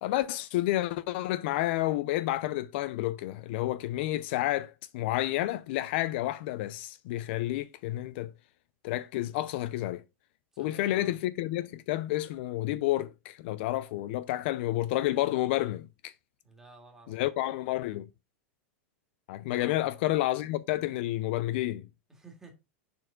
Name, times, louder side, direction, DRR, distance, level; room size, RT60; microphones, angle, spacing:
voice 1, 0.0-8.3 8.8-10.0 10.6-16.1 17.1-18.1 19.3-21.9, left 15 dB, 60° left, 0.5 m, -30 dB
voice 2, 10.5-11.2 16.4-17.2 19.5-19.9 22.1-22.5, right 3 dB, 5° right, 2.0 m, -53 dB
6.7 x 4.3 x 5.0 m
supercardioid pair, 150°, 7 cm